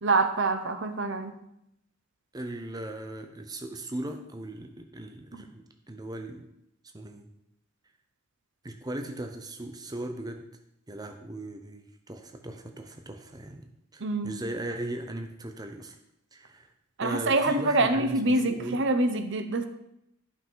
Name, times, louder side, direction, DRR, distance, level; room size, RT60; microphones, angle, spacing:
voice 1, 0.0-1.3 5.3-5.4 14.0-14.3 17.0-19.7, right 2 dB, 60° right, 8 dB, 0.9 m, -25 dB
voice 2, 2.3-6.5 6.9-7.3 8.6-10.5 10.9-16.0 16.3-16.7 17.0-18.8, right 1 dB, 20° right, 5 dB, 0.7 m, -38 dB
11.5 x 5.7 x 5.6 m, 0.80 s
head